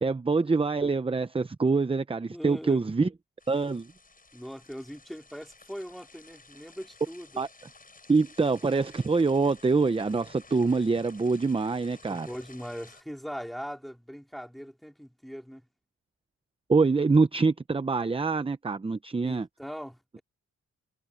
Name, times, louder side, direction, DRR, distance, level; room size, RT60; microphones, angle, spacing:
voice 1, 0.0-3.1 3.5-3.9 7.4-7.5 8.1-12.3 16.7-19.5, right 4 dB, 20° right, 0.7 m, -25 dB
voice 2, 2.3-2.8 4.3-7.4 12.1-15.6 19.2-20.2, equal, ahead, 3.2 m, -40 dB
sound 1, 3.4-13.0, left 3 dB, 30° left, 6.9 m, -54 dB
wide cardioid pair, 105°, 30 cm